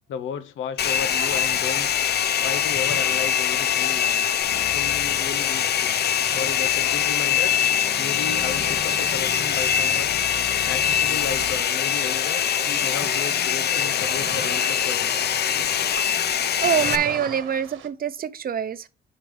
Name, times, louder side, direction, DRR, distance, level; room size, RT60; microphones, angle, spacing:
voice 1, 0.1-2.0 2.4-4.3 4.6-6.0 6.3-7.5 8.0-10.2 10.7-12.4 12.8-15.3, left 7 dB, 80° left, 1.0 m, -34 dB
Domestic sounds home sounds, 0.8-17.0, left 9 dB, 55° left, 0.7 m, -23 dB
sound 1, 1.2-17.9, right 7 dB, 80° right, 1.3 m, -42 dB
sound 2, 4.4-11.6, left 3 dB, 25° left, 2.4 m, -39 dB
voice 2, 16.3-18.9, right 8 dB, 45° right, 0.7 m, -25 dB
8.2 x 5.6 x 3.4 m
cardioid pair, 90°, 20 cm